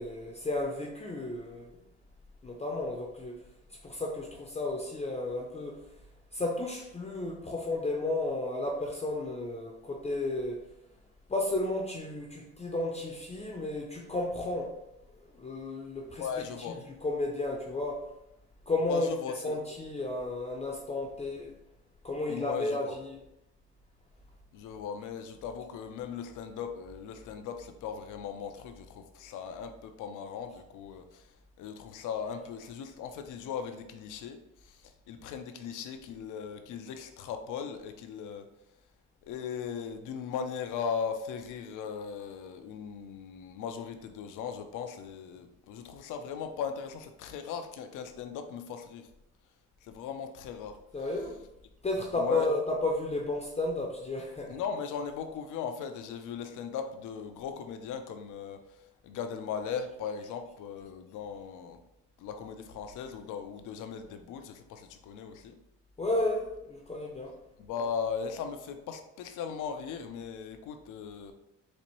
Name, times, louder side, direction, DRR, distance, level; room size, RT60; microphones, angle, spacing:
voice 1, 0.0-1.8 2.4-3.4 3.8-5.8 6.3-10.6 11.3-14.7 15.3-16.3 17.0-18.0 18.7-19.1 19.4-21.5 22.0-23.2 50.9-51.4 51.8-54.6 66.0-67.4, left 2 dB, 20° left, 1 dB, 0.5 m, -33 dB
voice 2, 16.2-16.8 18.9-19.6 22.3-23.0 24.5-31.3 31.6-38.5 39.2-49.1 49.8-50.8 52.1-52.5 54.5-61.8 62.2-65.6 67.6-71.3, left 7 dB, 85° left, 7 dB, 0.5 m, -38 dB
4.2 x 2.5 x 3.0 m, 0.86 s
cardioid pair, 90°, 30 cm